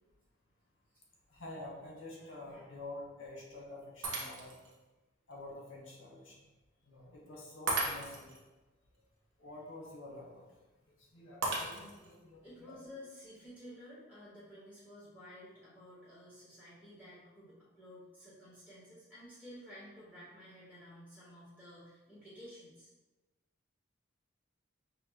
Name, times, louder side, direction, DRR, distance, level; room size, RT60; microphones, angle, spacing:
voice 1, 1.3-4.5 5.3-6.5 6.8-8.3 9.4-10.4 10.9-12.8, left 2 dB, 85° left, -3 dB, 1.3 m, -48 dB
Shatter, 4.0-4.7 5.3-5.4 7.7-8.4 11.4-12.2, right 2 dB, 75° right, 0.8 m, -36 dB
voice 2, 12.4-22.9, equal, 5° left, -10 dB, 1.1 m, -53 dB
5.7 x 2.2 x 3.0 m, 1.1 s
head